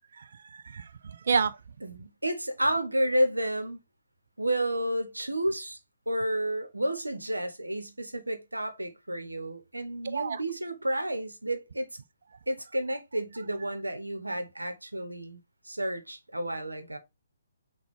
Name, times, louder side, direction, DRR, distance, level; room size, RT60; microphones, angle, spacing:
voice 1, 0.1-1.6 10.0-10.4, right 5 dB, 55° right, 0.4 m, -30 dB
voice 2, 1.8-3.8 4.4-5.8 6.1-11.9 12.5-15.4 15.6-17.0, right 1 dB, 80° right, 0.9 m, -31 dB
5.9 x 2.3 x 3.5 m
figure-of-eight pair, 130°, 0 cm